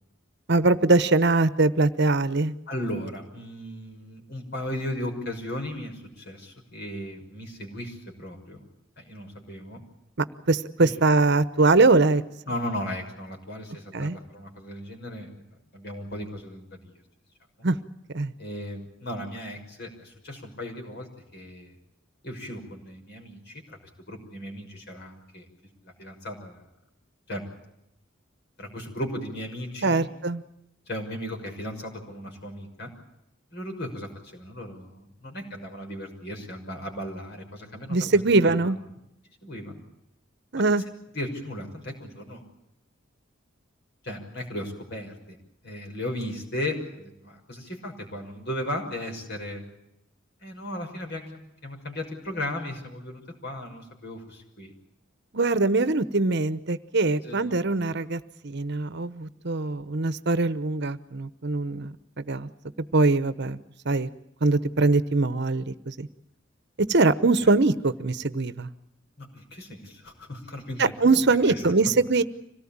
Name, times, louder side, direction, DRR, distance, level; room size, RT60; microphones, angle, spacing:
voice 1, 0.5-2.5 10.5-12.2 13.9-14.2 17.6-17.8 18.1-18.3 29.8-30.4 37.9-38.8 40.5-40.8 55.3-62.5 62.9-63.6 63.8-64.1 64.4-66.1 66.8-68.7 70.8-72.2, right 3 dB, 55° right, 14 dB, 1.0 m, -22 dB
voice 2, 2.7-8.7 9.0-9.8 10.8-10.9 12.5-15.4 15.7-16.9 18.4-21.7 22.2-23.8 24.1-25.4 25.8-26.6 27.3-27.4 28.6-30.1 30.9-32.9 33.5-38.0 38.4-38.6 39.4-39.8 41.1-42.4 44.0-45.4 45.6-49.6 50.4-54.7 57.2-57.8 69.2-71.7, left 1 dB, 55° left, 3 dB, 6.1 m, -36 dB
26.0 x 18.0 x 8.7 m, 0.83 s
head